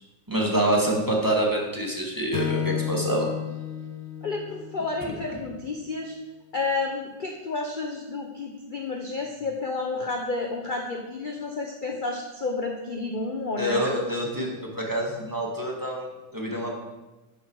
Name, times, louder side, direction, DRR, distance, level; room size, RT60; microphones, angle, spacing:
voice 1, 0.3-3.3 13.6-16.1 16.3-16.7, right 1 dB, 10° right, -2 dB, 2.1 m, -26 dB
Strum, 2.3-6.7, left 10 dB, 70° left, 1.5 m, -33 dB
voice 2, 4.2-6.1 6.5-13.9, left 3 dB, 40° left, 1 dB, 0.7 m, -31 dB
12.0 x 9.8 x 4.8 m, 1.1 s
omnidirectional pair, 2.2 m